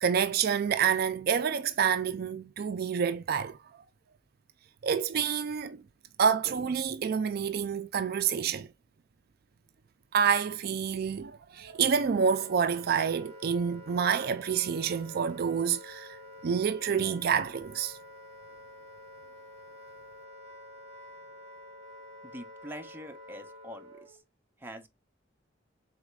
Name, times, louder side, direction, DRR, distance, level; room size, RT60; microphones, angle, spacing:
voice 1, 0.0-3.6 4.8-5.8 6.2-8.7 10.1-16.2 16.4-18.0, right 7 dB, 55° right, 0.4 m, -28 dB
Wind instrument woodwind instrument, 11.5-24.2, left 1 dB, 35° right, 1.3 m, -49 dB
voice 2, 22.2-24.2 24.6-24.9, equal, 10° right, 0.8 m, -44 dB
4.8 x 4.0 x 2.3 m
head